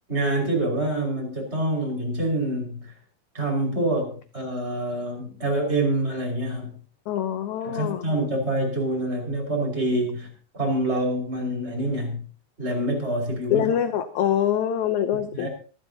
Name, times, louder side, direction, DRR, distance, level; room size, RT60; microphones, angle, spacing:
voice 1, 0.1-2.9 3.3-6.8 7.6-10.3 10.5-12.2 12.6-13.6 15.3-15.5, right 1 dB, 15° right, 0 dB, 5.4 m, -26 dB
voice 2, 7.1-8.1 13.5-15.5, left 10 dB, 75° left, 9 dB, 1.8 m, -24 dB
25.5 x 12.0 x 2.8 m, 0.39 s
omnidirectional pair, 4.2 m